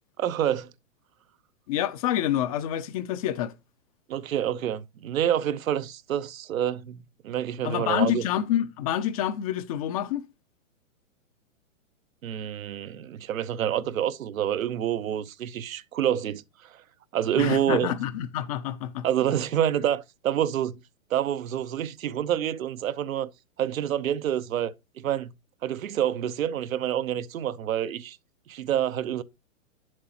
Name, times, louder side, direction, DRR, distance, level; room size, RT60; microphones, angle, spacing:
voice 1, 0.2-0.7 4.1-7.0 7.2-8.2 12.2-16.8 17.1-17.9 19.0-20.7 21.1-23.3 23.6-25.3 25.6-28.2 28.5-29.2, right 10 dB, 80° right, 0.8 m, -27 dB
voice 2, 1.7-3.5 7.6-10.2 17.4-19.4, left 11 dB, 30° left, 0.4 m, -28 dB
9.5 x 7.6 x 2.8 m
hypercardioid pair, 135°, 40 cm